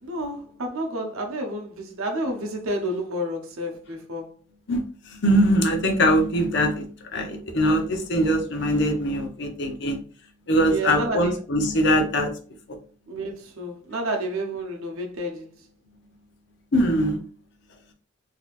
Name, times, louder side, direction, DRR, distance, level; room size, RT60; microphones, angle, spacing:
voice 1, 0.0-4.3 10.6-11.4 13.1-15.5, right 1 dB, 90° right, 0.9 m, -30 dB
voice 2, 5.2-6.8 7.1-10.0 10.5-12.3 16.7-17.2, equal, 55° left, 0.7 m, -22 dB
4.1 x 2.8 x 2.5 m
head